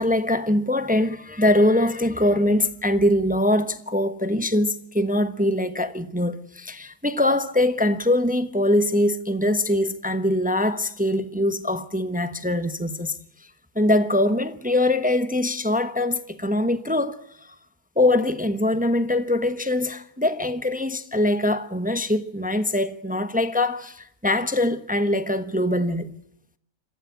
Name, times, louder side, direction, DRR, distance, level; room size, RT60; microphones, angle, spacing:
voice 1, 0.0-13.1 13.7-17.5 18.0-26.1, left 1 dB, 5° right, 1.0 m, -23 dB
28.0 x 14.5 x 8.4 m
omnidirectional pair, 1.5 m